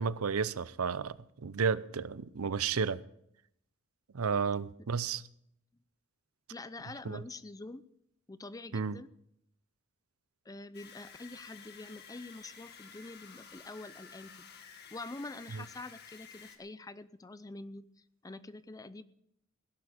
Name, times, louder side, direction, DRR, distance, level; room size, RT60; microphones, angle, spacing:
voice 1, 0.0-3.0 4.1-5.2 7.0-7.2 8.7-9.0, right 6 dB, 85° right, 0.6 m, -32 dB
voice 2, 6.5-7.8 8.3-9.1 10.5-14.5 14.9-19.0, left 2 dB, 15° left, 0.5 m, -46 dB
sound 1, 10.7-16.6, left 6 dB, 50° left, 1.8 m, -52 dB
17.0 x 11.0 x 5.1 m
head